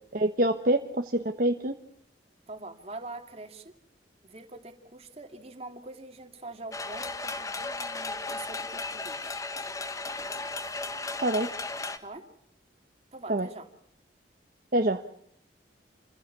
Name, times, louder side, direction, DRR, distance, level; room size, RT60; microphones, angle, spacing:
voice 1, 0.1-1.8 11.2-11.5 13.3-13.5 14.7-15.0, right 1 dB, 50° right, 5 dB, 1.3 m, -25 dB
voice 2, 2.5-3.7 4.2-9.4 12.0-12.2 13.1-13.7, right 2 dB, 35° right, 5 dB, 2.8 m, -44 dB
sound 1, 6.7-12.0, left 3 dB, 20° left, 1.5 m, -35 dB
29.0 x 16.0 x 8.5 m, 0.72 s
head